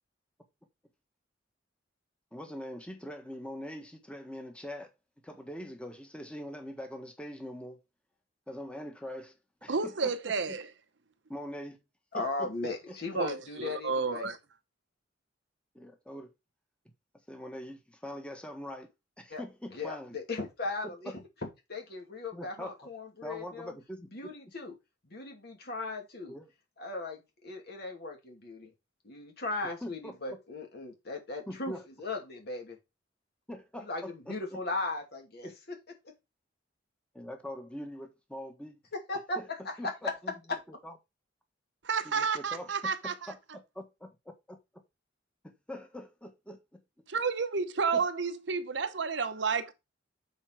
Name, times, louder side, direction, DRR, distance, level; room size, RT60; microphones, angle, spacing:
voice 1, 2.3-4.9 5.2-7.8 8.5-10.6 11.3-11.8 12.4-12.5 15.7-16.3 17.3-18.9 19.2-20.2 21.1-21.2 22.3-22.7 23.2-24.1 26.3-26.4 29.8-30.1 31.5-31.9 33.5-34.4 35.4-35.6 37.1-38.8 39.4-39.5 39.8-40.3 40.8-40.9 42.0-44.6 45.4-46.6 47.9-48.0, equal, 5° left, 1.4 m, -43 dB
voice 2, 9.7-10.7 13.1-14.4 41.8-43.3 47.1-49.7, right 5 dB, 70° right, 0.9 m, -31 dB
voice 3, 12.1-14.3 19.3-19.4 19.7-23.7 24.1-24.8 25.0-26.4 26.8-28.7 29.0-32.8 33.8-35.8 38.9-40.1 40.5-40.6, left 3 dB, 60° left, 2.5 m, -37 dB
7.0 x 4.6 x 4.6 m
head